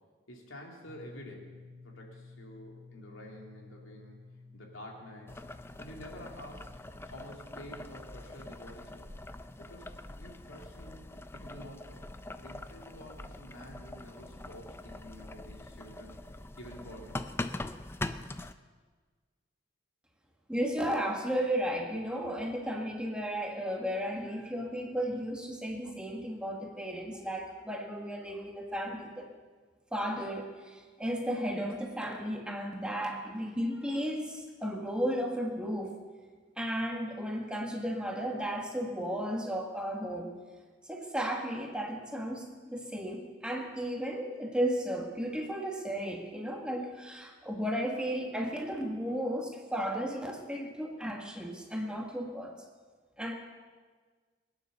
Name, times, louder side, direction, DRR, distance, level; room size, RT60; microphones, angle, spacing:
voice 1, 0.3-1.5 1.8-4.3 4.5-5.5 5.8-6.7 7.0-9.2 9.6-11.0 11.3-12.0 12.4-16.2 16.6-17.3, equal, 85° left, 0 dB, 3.2 m, -49 dB
sound 1, 0.9-12.6, left 3 dB, 35° right, 2.1 m, -56 dB
Boiling, 5.3-18.5, left 2 dB, 10° left, 0.4 m, -43 dB
voice 2, 20.5-29.3 29.9-35.9 36.6-40.3 40.8-52.6 53.2-53.3, equal, 5° right, 1 dB, 1.5 m, -34 dB
21.0 x 9.7 x 6.8 m, 1.5 s
head